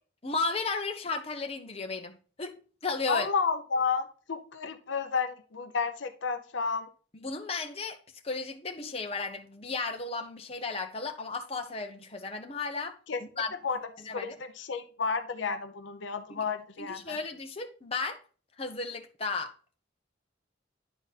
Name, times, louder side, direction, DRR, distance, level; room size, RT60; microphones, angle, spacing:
voice 1, 0.2-3.3 7.1-8.0 8.2-12.9 13.2-13.6 14.1-14.3 16.8-18.2 18.6-19.5, left 4 dB, 30° left, 0.9 m, -34 dB
voice 2, 3.1-6.9 13.1-13.2 13.6-17.2, left 5 dB, 80° left, 0.7 m, -32 dB
10.0 x 4.0 x 4.1 m
head